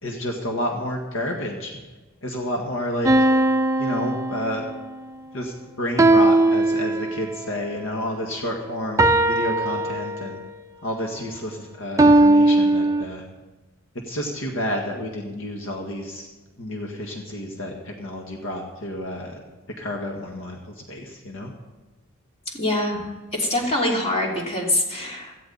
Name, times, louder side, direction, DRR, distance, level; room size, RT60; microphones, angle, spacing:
voice 1, 0.0-1.8 2.2-3.3 3.8-4.7 5.3-10.4 10.8-13.3 13.9-16.3 16.6-19.4 19.8-21.5, left 1 dB, 65° left, 1 dB, 1.7 m, -30 dB
sound 1, 3.0-4.8 6.0-7.4 9.0-10.5 12.0-13.0, right 2 dB, 15° right, 0.6 m, -19 dB
voice 2, 22.5-25.3, left 1 dB, 30° left, -1 dB, 3.1 m, -24 dB
17.0 x 14.5 x 4.1 m, 1.2 s
head